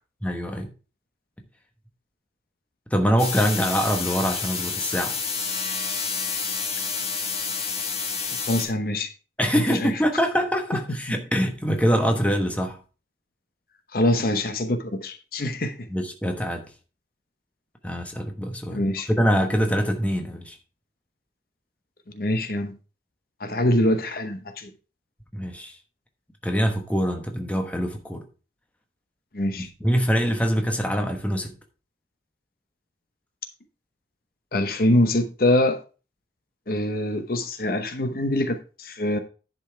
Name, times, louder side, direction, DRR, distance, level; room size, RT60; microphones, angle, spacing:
voice 1, 0.2-0.7 2.9-5.2 9.4-12.8 15.9-16.6 17.8-18.8 19.1-20.6 25.3-25.8 26.4-28.2 29.6-31.5, equal, 10° left, 1.1 m, -24 dB
sound 1, 3.2-8.7, left 5 dB, 35° left, 1.7 m, -29 dB
voice 2, 8.4-9.1 9.5-9.9 13.9-15.7 18.7-19.1 22.1-22.7 23.4-24.7 29.3-29.7 34.5-35.8 36.7-39.2, left 1 dB, 55° left, 0.9 m, -24 dB
10.5 x 5.5 x 4.5 m
head